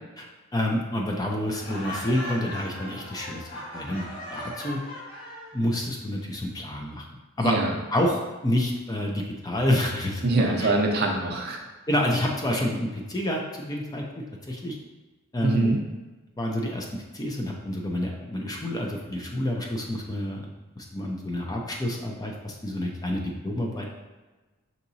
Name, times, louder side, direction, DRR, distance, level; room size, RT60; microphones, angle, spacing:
voice 1, 0.5-4.8 5.5-7.0 7.4-7.5 7.9-10.7 11.9-14.0 14.5-14.8 15.3-15.8 16.4-20.5 20.8-23.9, left 1 dB, 15° left, 0 dB, 0.4 m, -28 dB
Laughter, 1.5-5.6, left 1 dB, 55° left, 1.4 m, -38 dB
voice 2, 10.2-11.6 15.4-15.8, right 2 dB, 50° right, 2 dB, 0.6 m, -24 dB
5.7 x 2.8 x 2.6 m, 1.2 s
head